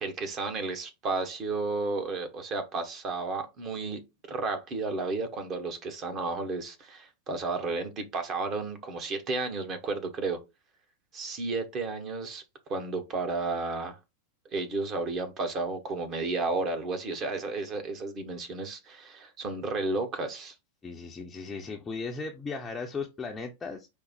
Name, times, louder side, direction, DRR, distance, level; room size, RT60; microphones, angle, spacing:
voice 1, 0.0-4.0 4.3-10.4 11.1-12.4 12.7-14.0 14.5-20.6, right 3 dB, 30° right, 1.0 m, -32 dB
voice 2, 20.8-23.9, left 4 dB, 15° left, 0.6 m, -36 dB
5.1 x 2.1 x 4.2 m
figure-of-eight pair, 90°, 0 cm